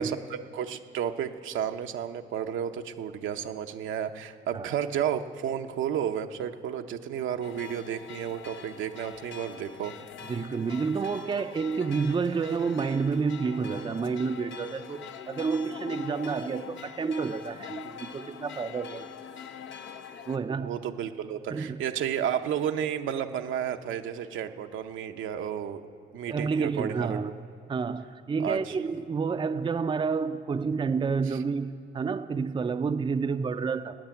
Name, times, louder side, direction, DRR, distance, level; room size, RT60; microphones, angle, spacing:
voice 1, 0.0-9.9 20.6-25.8 26.1-27.2 28.4-28.8, right 9 dB, 80° right, 6 dB, 0.8 m, -32 dB
sound 1, 7.4-20.4, left 7 dB, 75° left, 0.9 m, -43 dB
voice 2, 10.3-19.1 20.3-20.7 21.5-21.8 26.3-27.3 27.7-34.0, right 5 dB, 25° right, 9 dB, 0.5 m, -29 dB
15.0 x 9.4 x 9.0 m, 2.3 s
cardioid pair, 90°, 20 cm